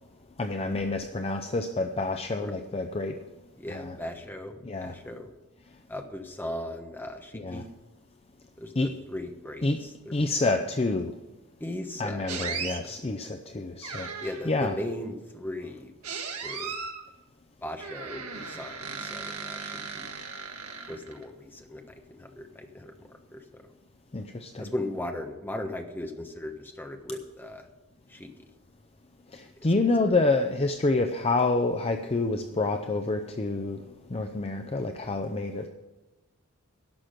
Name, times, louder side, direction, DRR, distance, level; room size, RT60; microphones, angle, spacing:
voice 1, 0.4-3.1 3.7-4.0 4.6-4.9 7.3-7.6 8.8-8.9 9.6-9.8 10.1-11.1 12.0-14.1 14.5-14.8 24.1-24.7 29.3-33.8 34.1-35.7, left 2 dB, 25° left, 6 dB, 0.6 m, -28 dB
voice 2, 3.6-5.3 5.9-7.7 8.6-10.2 11.6-13.0 14.2-15.9 16.4-16.7 17.6-20.1 20.9-21.8 22.1-23.4 24.6-27.7 28.1-28.3, left 1 dB, 10° left, 4 dB, 1.2 m, -38 dB
sound 1, 12.3-12.8 13.8-14.6 16.0-17.0 17.8-21.2, right 5 dB, 80° right, 1.7 m, -37 dB
11.5 x 6.2 x 8.8 m, 1.1 s
head